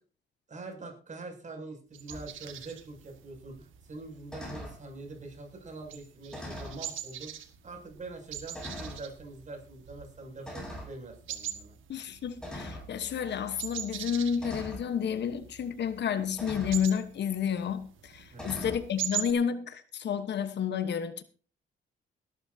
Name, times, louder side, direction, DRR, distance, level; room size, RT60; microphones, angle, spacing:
voice 1, 0.5-7.3 7.6-11.8 18.3-18.7, right 3 dB, 40° right, 7.2 m, -44 dB
sound 1, 1.9-19.3, right 10 dB, 80° right, 1.8 m, -43 dB
sound 2, 2.1-2.3 4.3-4.8 6.3-6.8 7.7-7.8 8.5-9.1 10.5-11.0 12.4-12.9 14.4-14.9 16.4-16.8 18.3-18.8, equal, 5° left, 7.9 m, -41 dB
voice 2, 11.9-21.2, left 7 dB, 60° left, 1.2 m, -31 dB
18.5 x 12.5 x 2.8 m
cardioid pair, 90°, 20 cm